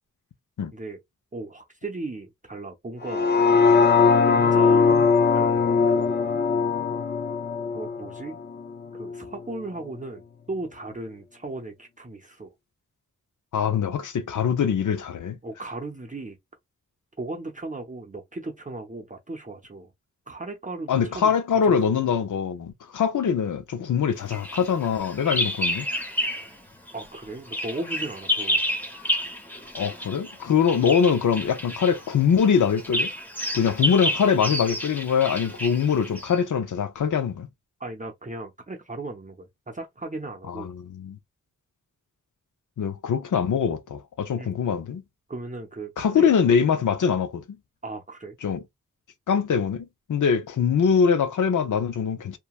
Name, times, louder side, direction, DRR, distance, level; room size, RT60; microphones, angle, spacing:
voice 1, 1.3-3.3 4.3-6.2 7.7-8.4 8.9-12.5 15.4-16.4 17.2-19.9 20.3-21.3 21.6-22.0 26.9-28.6 37.8-40.7 44.4-44.6 45.3-46.3 47.8-48.4, right 2 dB, 25° right, 0.6 m, -36 dB
sound 1, 3.0-9.2 9.6-9.7, left 5 dB, 35° left, 0.4 m, -20 dB
voice 2, 13.5-15.4 20.9-25.9 29.7-33.1 33.5-37.5 40.5-41.2 42.8-45.0 46.0-47.4 48.4-48.6 49.3-52.4, left 7 dB, 80° left, 0.6 m, -23 dB
Bird vocalization bird call bird song, 24.3-26.6 26.9-36.4, left 1 dB, 5° left, 0.7 m, -30 dB
2.9 x 2.2 x 2.2 m
wide cardioid pair, 80°, 30 cm